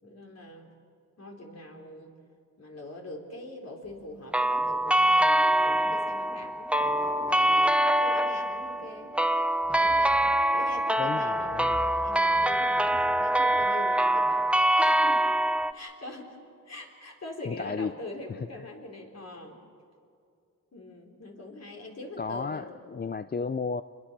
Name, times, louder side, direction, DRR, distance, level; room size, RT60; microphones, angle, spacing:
voice 1, 0.0-0.7 1.2-2.1 2.6-9.1 9.7-15.2 15.7-16.4 16.6-19.6 20.7-22.6, left 2 dB, 50° left, 1 dB, 4.3 m, -43 dB
sound 1, 4.3-15.7, right 1 dB, 5° right, 0.7 m, -24 dB
voice 2, 11.0-11.8 17.5-17.9 18.3-18.4 22.2-23.8, left 5 dB, 30° left, 12 dB, 0.5 m, -33 dB
29.0 x 21.5 x 6.8 m, 2.5 s
wide cardioid pair, 105°, 33 cm